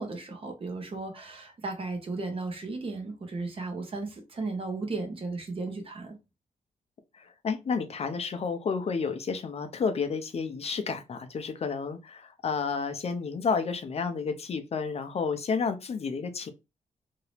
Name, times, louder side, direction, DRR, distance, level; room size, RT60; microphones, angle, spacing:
voice 1, 0.0-6.2, right 3 dB, 40° right, 1.0 m, -35 dB
voice 2, 7.1-16.5, left 5 dB, 50° left, 0.5 m, -31 dB
2.9 x 2.6 x 3.2 m
wide cardioid pair, 155°, 14 cm